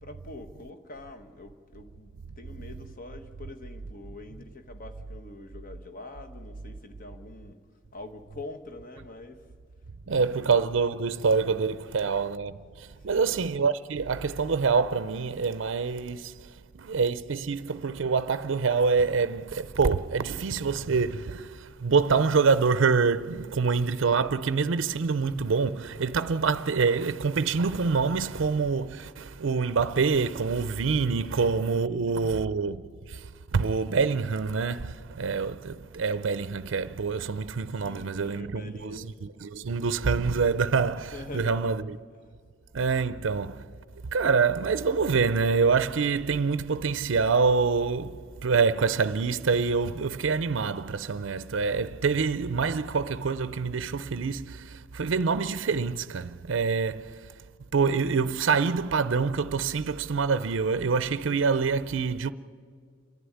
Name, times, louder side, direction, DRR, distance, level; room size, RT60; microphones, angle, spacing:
voice 1, 0.0-7.6 7.9-9.5 10.0-10.5 13.0-13.7 31.0-31.1 31.9-32.2 37.8-39.2 41.0-41.7 42.1-42.3, left 2 dB, 45° left, 1.3 m, -45 dB
voice 2, 10.1-16.3 16.7-32.8 33.1-42.0 42.7-43.6 44.1-57.2 57.7-62.3, right 5 dB, 70° right, 0.5 m, -26 dB
28.5 x 11.5 x 10.0 m
head